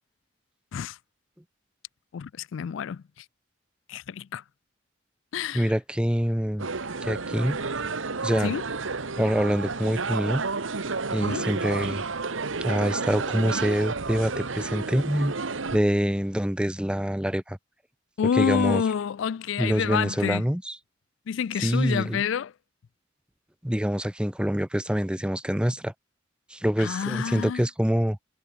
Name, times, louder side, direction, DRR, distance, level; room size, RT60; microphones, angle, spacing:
voice 1, 2.1-3.3 3.9-4.4 5.3-5.7 8.4-8.6 11.2-11.5 18.2-20.4 21.3-22.5 26.8-27.7, left 7 dB, 75° left, 0.4 m, -28 dB
voice 2, 5.5-6.7 7.0-7.6 8.2-8.5 9.2-10.4 11.1-12.0 12.6-15.3 15.7-17.6 18.3-18.8 19.6-20.8 21.6-22.2 23.6-25.9 26.5-28.2, equal, 5° right, 0.8 m, -25 dB
Restaurant sounds, 6.6-15.8, right 4 dB, 80° right, 1.4 m, -31 dB
head